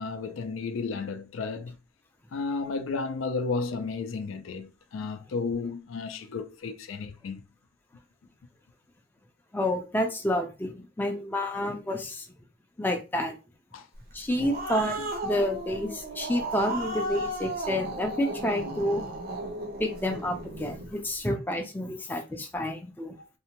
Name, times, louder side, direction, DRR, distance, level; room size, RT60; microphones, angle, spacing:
voice 1, 0.0-1.8 2.3-7.4 13.7-13.9 15.0-15.1 18.6-18.8 23.2-23.3, left 4 dB, 85° left, 0.4 m, -33 dB
voice 2, 9.5-12.3 12.8-13.3 14.1-19.0 19.8-23.1, left 1 dB, 10° left, 0.4 m, -29 dB
Growling, 14.1-20.9, right 1 dB, 50° right, 0.5 m, -35 dB
2.6 x 2.1 x 2.8 m
head